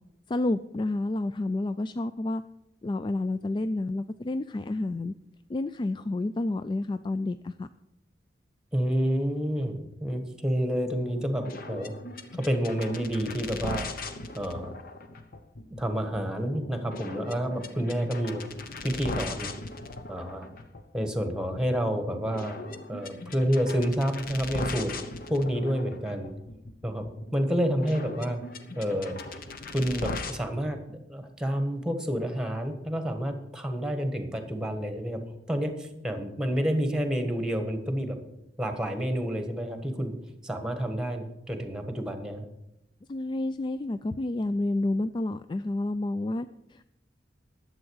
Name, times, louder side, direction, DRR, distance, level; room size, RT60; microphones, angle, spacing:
voice 1, 0.3-2.4 2.8-5.1 5.5-7.7 43.1-46.9, left 2 dB, 25° left, 12 dB, 0.3 m, -30 dB
voice 2, 8.7-11.9 12.3-13.9 14.3-14.8 15.8-18.4 18.8-19.5 20.1-20.5 20.9-22.6 22.9-24.9 25.3-26.3 26.8-27.1 27.3-28.4 28.8-29.4 29.7-35.2 35.5-38.2 38.6-40.1 40.4-42.4, equal, 5° right, 6 dB, 1.4 m, -29 dB
sound 1, 10.9-30.4, left 3 dB, 55° left, 1.0 m, -40 dB
11.5 x 7.8 x 6.3 m, 0.87 s
head